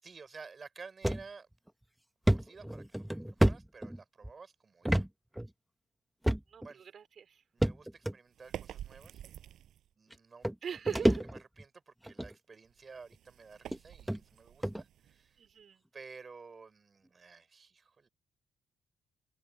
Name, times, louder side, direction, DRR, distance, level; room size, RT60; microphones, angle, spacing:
voice 1, 0.0-1.5 2.3-5.0 6.6-6.8 7.5-9.2 10.0-15.4 15.9-18.1, right 4 dB, 35° right, 6.1 m, -53 dB
sound 1, 1.0-1.2 1.7-1.8 2.3-4.3 4.8-5.1 5.4-5.5 6.2-6.7 7.6-8.1 9.0-9.1 10.1-10.2 10.4-11.6 12.1-12.3 13.1-13.2 13.7-13.8 14.1-14.2 14.6-14.8, right 1 dB, 5° right, 1.3 m, -29 dB
voice 2, 6.5-7.4 10.6-11.2 15.4-15.8, right 7 dB, 55° right, 4.0 m, -40 dB
sound 2, 8.3-9.9 12.6-15.6, right 11 dB, 75° right, 6.9 m, -49 dB
cardioid pair, 90°, 0 cm